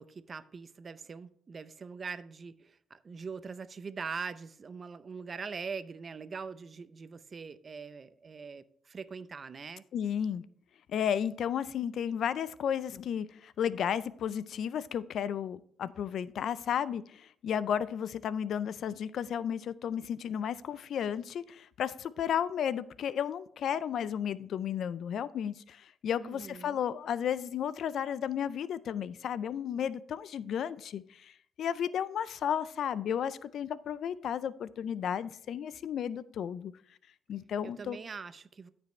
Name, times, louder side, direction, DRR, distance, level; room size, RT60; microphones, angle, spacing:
voice 1, 0.0-9.8 26.2-26.8 37.6-38.7, right 5 dB, 40° right, 0.5 m, -42 dB
voice 2, 9.9-10.4 10.9-31.3 31.6-36.7 37.3-38.0, left 8 dB, 65° left, 0.4 m, -33 dB
13.5 x 5.3 x 3.2 m
cardioid pair, 95°, 0 cm